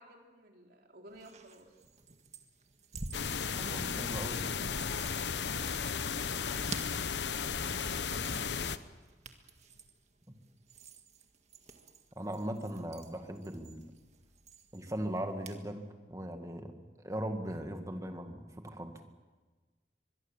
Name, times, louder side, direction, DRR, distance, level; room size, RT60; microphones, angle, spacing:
voice 1, 0.0-1.7 3.0-3.6, right 1 dB, 60° right, 1 dB, 3.8 m, -55 dB
sound 1, 1.1-15.6, right 3 dB, 40° right, 1.9 m, -50 dB
sound 2, 3.1-8.8, left 6 dB, 75° left, 0.9 m, -34 dB
voice 2, 3.5-5.1 10.3-10.4 12.2-13.9 14.7-19.0, right 1 dB, 20° right, 5 dB, 2.1 m, -39 dB
24.0 x 22.5 x 7.4 m, 1.3 s
head